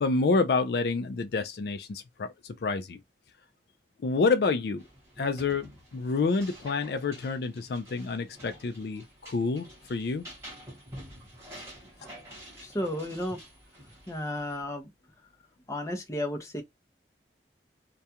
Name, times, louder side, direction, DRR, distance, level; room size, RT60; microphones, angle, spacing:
voice 1, 0.0-3.0 4.0-4.8 5.2-10.3, left 4 dB, 60° left, 0.4 m, -28 dB
sound 1, 4.8-14.6, equal, 15° right, 1.2 m, -49 dB
voice 2, 12.5-13.4 14.1-14.9 15.7-16.6, left 1 dB, 20° left, 0.6 m, -33 dB
2.3 x 2.2 x 2.7 m
head